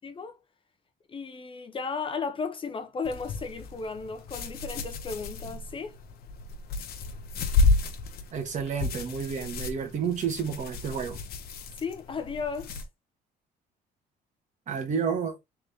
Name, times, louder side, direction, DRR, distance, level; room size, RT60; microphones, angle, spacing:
voice 1, 0.0-0.4 1.1-6.0 11.8-12.7, left 5 dB, 30° left, 0.8 m, -35 dB
sound 1, 3.0-12.8, left 3 dB, 65° left, 1.1 m, -31 dB
voice 2, 8.3-11.2 14.7-15.3, right 6 dB, 45° right, 1.6 m, -30 dB
3.8 x 3.7 x 3.5 m
cardioid pair, 110°, 17 cm